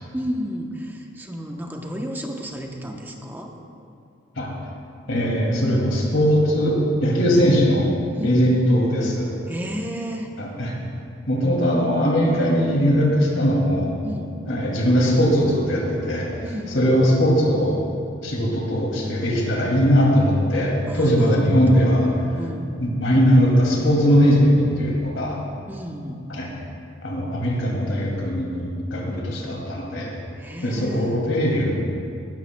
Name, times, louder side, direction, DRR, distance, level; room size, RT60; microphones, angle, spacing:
voice 1, 0.1-3.5 8.1-8.5 9.5-10.3 14.0-14.4 16.4-17.0 20.9-21.9 22.3-22.8 25.7-26.2 30.4-31.2, equal, 10° right, 1 dB, 0.8 m, -32 dB
voice 2, 5.1-7.9 8.2-9.3 10.4-10.7 11.3-14.0 14.5-16.3 16.7-17.8 18.2-22.1 22.8-25.4 26.3-26.5 27.0-30.1 30.6-31.7, equal, 80° left, -2 dB, 2.5 m, -20 dB
17.5 x 12.5 x 2.3 m, 2.5 s
head